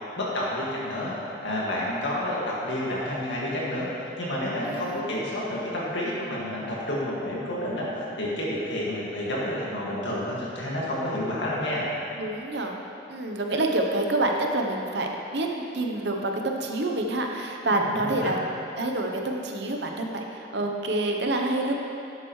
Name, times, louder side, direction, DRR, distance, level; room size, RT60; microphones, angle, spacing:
voice 1, 0.2-11.8 17.7-18.4, left 1 dB, 70° left, -6 dB, 2.0 m, -30 dB
voice 2, 4.6-5.1 12.2-12.8 13.1-15.5 15.7-18.4 18.8-21.7, right 2 dB, 60° right, 2 dB, 0.8 m, -27 dB
10.5 x 7.9 x 3.1 m, 2.8 s
head